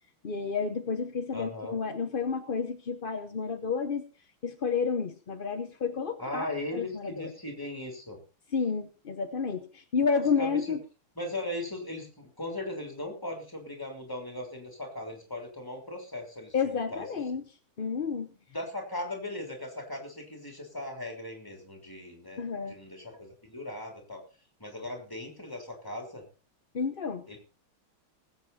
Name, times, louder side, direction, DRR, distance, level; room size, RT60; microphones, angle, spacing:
voice 1, 0.2-4.0 4.4-7.3 8.5-10.8 16.5-17.4 17.8-18.3 22.4-22.7 26.7-27.2, left 5 dB, 50° left, 7 dB, 0.6 m, -30 dB
voice 2, 1.3-1.8 6.2-8.2 10.1-10.6 11.1-17.1 18.5-22.4 22.7-24.2 24.6-26.2 27.3-27.4, left 1 dB, 10° left, 2 dB, 3.5 m, -38 dB
20.0 x 8.2 x 4.2 m, 0.36 s
omnidirectional pair, 2.3 m